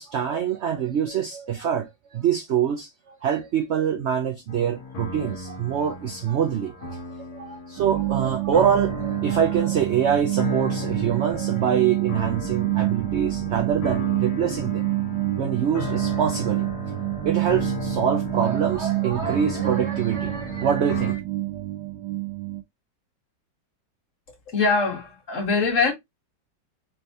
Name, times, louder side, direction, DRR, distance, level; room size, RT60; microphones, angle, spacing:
voice 1, 0.0-7.0 7.3-14.8 15.4-16.7 17.2-21.2, right 8 dB, 60° right, 0.7 m, -25 dB
sound 1, 4.5-21.1, left 3 dB, 60° left, 1.7 m, -35 dB
sound 2, 7.8-22.6, right 18 dB, 80° right, 1.3 m, -28 dB
voice 2, 24.5-25.9, left 4 dB, 45° left, 1.9 m, -22 dB
4.5 x 3.3 x 2.7 m
omnidirectional pair, 2.0 m